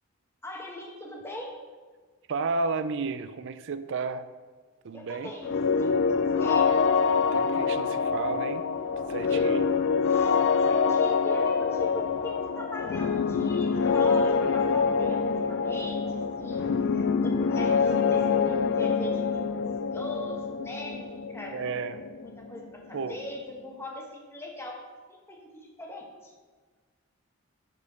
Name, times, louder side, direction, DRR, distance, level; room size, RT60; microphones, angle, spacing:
voice 1, 0.4-1.6 4.9-7.0 9.3-9.8 10.1-15.2 15.5-21.9 22.2-26.3, left 1 dB, 10° left, 0 dB, 1.0 m, -41 dB
voice 2, 2.3-4.3 4.8-5.3 7.3-8.7 9.1-9.7 21.5-22.0 22.9-23.2, right 4 dB, 55° right, 12 dB, 0.4 m, -32 dB
sound 1, 5.4-23.1, left 5 dB, 55° left, 0.3 m, -26 dB
sound 2, 5.9-8.3 8.7-11.0 11.6-13.9 14.4-16.7, equal, 40° left, 1.3 m, -45 dB
6.5 x 5.2 x 5.4 m, 1.5 s
head